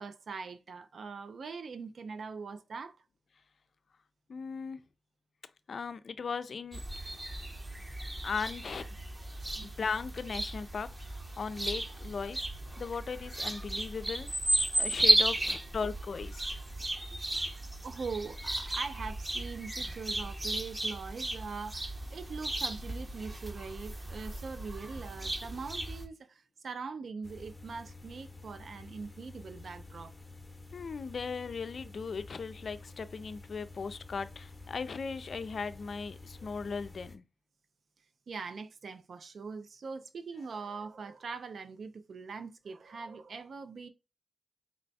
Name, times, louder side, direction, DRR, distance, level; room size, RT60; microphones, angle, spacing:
voice 1, 0.0-3.0 9.6-9.7 14.6-14.7 17.1-17.2 17.8-30.1 38.3-43.9, right 5 dB, 75° right, 0.4 m, -42 dB
voice 2, 4.3-4.8 5.7-6.8 8.2-9.0 9.6-12.5 12.8-14.3 14.7-16.6 30.7-37.2, left 5 dB, 70° left, 0.4 m, -38 dB
sound 1, 6.7-26.1, right 1 dB, 35° right, 1.0 m, -34 dB
sound 2, 27.2-37.2, left 3 dB, 20° left, 0.8 m, -50 dB
4.1 x 2.2 x 4.0 m
cardioid pair, 60°, 0 cm